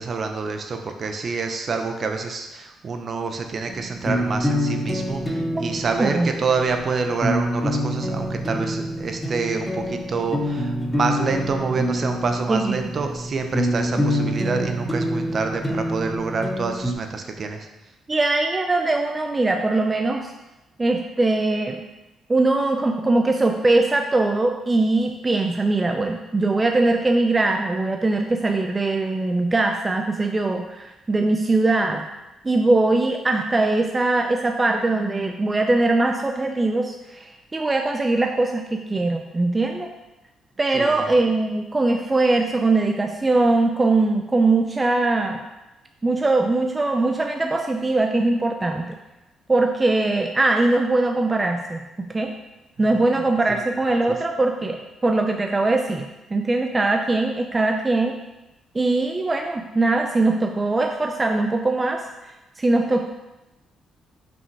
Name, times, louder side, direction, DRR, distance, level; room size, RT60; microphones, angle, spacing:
voice 1, 0.0-17.7 40.7-41.1 53.2-53.3 53.5-53.6, right 4 dB, 50° right, 5 dB, 0.9 m, -27 dB
sound 1, 3.7-16.9, equal, 10° left, 1.0 m, -26 dB
voice 2, 6.0-6.3 12.5-12.9 14.0-14.1 18.1-20.3 20.8-21.8 22.3-32.1 32.4-39.9 40.6-45.4 46.0-48.9 49.5-51.8 52.1-52.3 52.8-58.1 58.7-62.0 62.6-63.1, right 2 dB, 25° right, 3 dB, 0.6 m, -21 dB
5.9 x 5.3 x 4.8 m, 1.0 s
cardioid pair, 75°, 0 cm